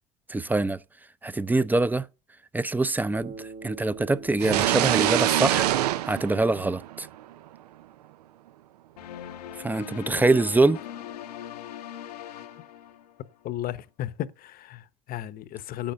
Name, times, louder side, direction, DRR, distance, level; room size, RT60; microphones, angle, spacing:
voice 1, 0.3-0.8 1.2-2.0 2.5-5.7 6.0-7.1 9.6-10.8, right 2 dB, 10° right, 0.5 m, -24 dB
Bass guitar, 3.2-7.6, right 4 dB, 55° right, 3.3 m, -46 dB
sound 1, 4.4-7.2, right 13 dB, 85° right, 0.5 m, -25 dB
sound 2, 9.0-13.4, left 10 dB, 90° left, 0.9 m, -40 dB
voice 2, 13.4-15.9, left 13 dB, 50° left, 0.9 m, -34 dB
8.9 x 7.3 x 6.8 m
hypercardioid pair, 80°, 20 cm